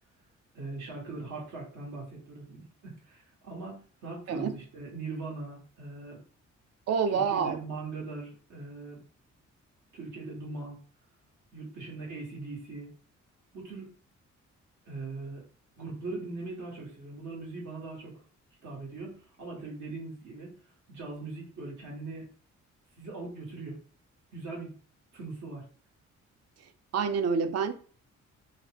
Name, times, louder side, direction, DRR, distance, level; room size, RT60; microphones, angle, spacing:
voice 1, 0.5-6.2 7.1-9.0 9.9-10.8 11.5-12.9 13.5-13.9 14.8-15.4 15.8-18.2 18.6-20.6 20.9-22.3 23.0-23.8 24.3-24.7 25.1-25.6, right 3 dB, 75° right, 1.6 m, -40 dB
voice 2, 6.9-7.6 26.9-27.7, right 6 dB, 60° right, 0.5 m, -27 dB
3.3 x 2.3 x 2.9 m
cardioid pair, 90°, 30 cm